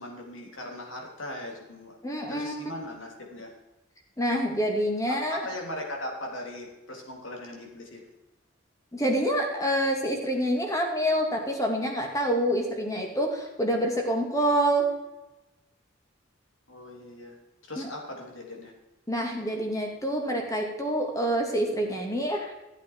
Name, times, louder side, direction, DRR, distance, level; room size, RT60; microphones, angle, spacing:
voice 1, 0.0-2.0 2.3-3.5 5.1-8.1 16.7-17.4 17.6-18.7, left 1 dB, 75° left, 0 dB, 3.4 m, -39 dB
voice 2, 2.0-2.6 4.2-5.5 8.9-14.9 17.8-17.9 19.1-22.5, equal, 15° left, 2 dB, 2.3 m, -27 dB
15.0 x 8.3 x 4.7 m, 1.0 s
head